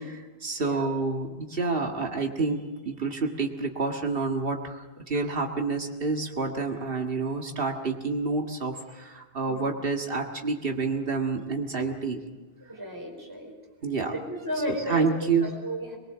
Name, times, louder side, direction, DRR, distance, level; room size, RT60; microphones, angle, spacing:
voice 1, 0.0-12.2 13.8-14.1 14.9-15.5, right 4 dB, 65° right, 3 dB, 2.1 m, -28 dB
voice 2, 0.6-0.9 9.4-9.7 12.7-13.5 14.1-16.0, equal, 20° right, -1 dB, 4.8 m, -34 dB
22.5 x 21.5 x 7.4 m, 1.2 s
omnidirectional pair, 1.0 m